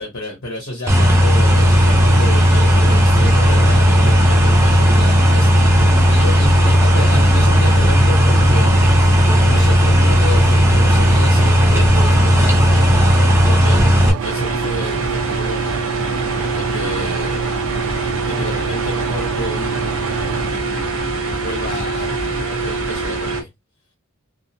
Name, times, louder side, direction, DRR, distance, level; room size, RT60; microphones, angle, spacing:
voice 1, 0.0-8.9 9.4-17.5 18.2-22.1 22.4-23.5, left 1 dB, 55° left, 0.8 m, -31 dB
sound 1, 0.9-14.1, equal, 10° right, 0.5 m, -13 dB
sound 2, 1.5-20.5, right 6 dB, 85° right, 0.3 m, -28 dB
sound 3, 14.2-23.4, right 3 dB, 65° right, 0.7 m, -24 dB
2.4 x 2.0 x 2.7 m
head